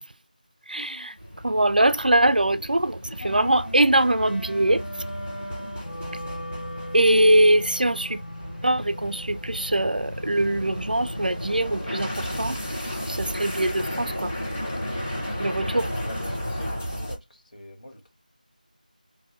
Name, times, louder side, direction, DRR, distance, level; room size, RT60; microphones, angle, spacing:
voice 1, 0.7-1.2 1.4-4.8 6.9-8.2 8.6-12.6 13.1-14.3 15.4-15.9, right 1 dB, 75° right, 0.4 m, -22 dB
sound 1, 1.2-17.2, equal, 15° left, 0.5 m, -34 dB
sound 2, 3.2-15.5, left 1 dB, 85° left, 0.7 m, -41 dB
voice 2, 15.8-18.1, equal, 65° left, 1.2 m, -43 dB
2.6 x 2.3 x 3.1 m
figure-of-eight pair, 170°, 5 cm